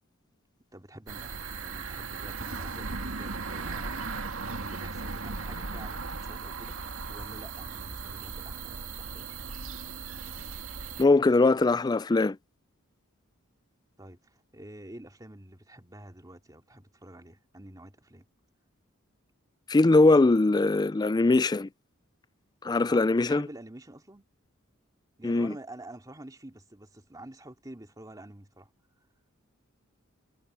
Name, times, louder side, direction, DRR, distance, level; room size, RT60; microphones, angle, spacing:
voice 1, 0.7-4.1 4.5-9.3 14.0-18.3 22.9-24.3 25.2-28.7, right 1 dB, 20° right, 2.5 m, -48 dB
sound 1, 1.1-11.0, right 4 dB, 80° right, 2.1 m, -37 dB
voice 2, 11.0-12.4 19.7-21.7 22.6-23.5 25.2-25.5, left 3 dB, 20° left, 0.4 m, -21 dB
head